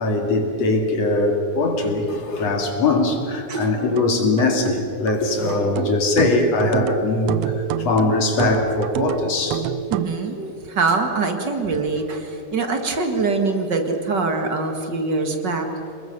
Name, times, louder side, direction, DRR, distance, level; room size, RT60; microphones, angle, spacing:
voice 1, 0.0-9.7, left 2 dB, 55° left, 3 dB, 3.5 m, -21 dB
sound 1, 3.5-10.2, right 11 dB, 85° right, 1.3 m, -29 dB
voice 2, 9.9-15.7, right 3 dB, 40° right, 5 dB, 2.3 m, -23 dB
27.5 x 21.0 x 6.9 m, 2.8 s
omnidirectional pair, 3.5 m